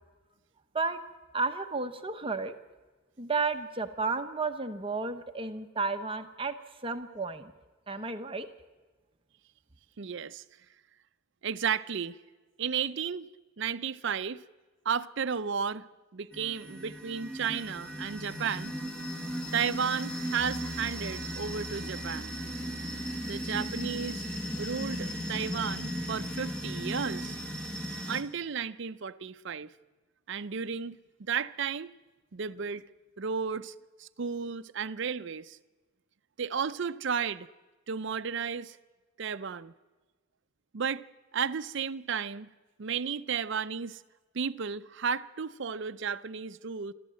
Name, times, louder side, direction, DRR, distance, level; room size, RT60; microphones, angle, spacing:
voice 1, 1.3-2.5 3.2-6.5 6.8-7.5 7.9-8.5, right 4 dB, 25° right, 0.9 m, -32 dB
voice 2, 10.0-10.4 11.4-12.2 12.6-13.3 13.6-14.4 14.8-15.9 16.1-18.7 19.5-22.3 23.3-24.3 24.6-27.4 28.1-29.7 30.3-31.9 32.3-32.8 33.2-35.6 36.4-37.5 37.9-38.8 39.2-39.7 40.7-41.1 41.3-42.5 42.8-44.0 44.3-46.9, right 6 dB, 55° right, 0.5 m, -33 dB
sound 1, 16.3-28.2, equal, 5° left, 1.6 m, -36 dB
Piano, 20.4-28.0, right 1 dB, 40° right, 1.2 m, -48 dB
27.5 x 13.5 x 7.6 m
head